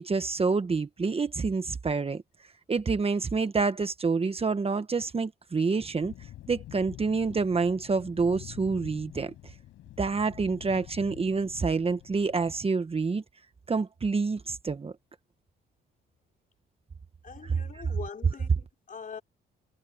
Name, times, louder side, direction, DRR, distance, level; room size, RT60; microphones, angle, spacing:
voice 1, 0.0-2.2 2.7-6.1 6.5-9.3 10.0-13.2 13.7-14.9 17.4-17.6, right 4 dB, 30° right, 1.4 m, -27 dB
sound 1, 6.0-12.6, left 13 dB, 85° left, 5.8 m, -47 dB
voice 2, 17.2-19.2, left 6 dB, 45° left, 3.8 m, -43 dB
cardioid pair, 90°, 20 cm